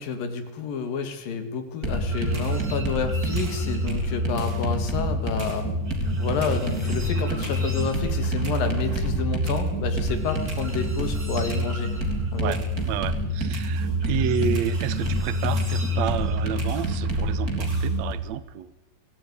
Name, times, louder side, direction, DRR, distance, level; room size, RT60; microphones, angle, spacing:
voice 1, 0.0-5.7 6.2-11.9 12.3-12.6, left 5 dB, 75° left, 8 dB, 3.9 m, -29 dB
sound 1, 1.8-18.1, equal, 25° right, 3.5 m, -26 dB
voice 2, 12.4-18.7, right 10 dB, 65° right, 15 dB, 1.9 m, -30 dB
23.5 x 18.0 x 9.6 m, 1.0 s
omnidirectional pair, 4.0 m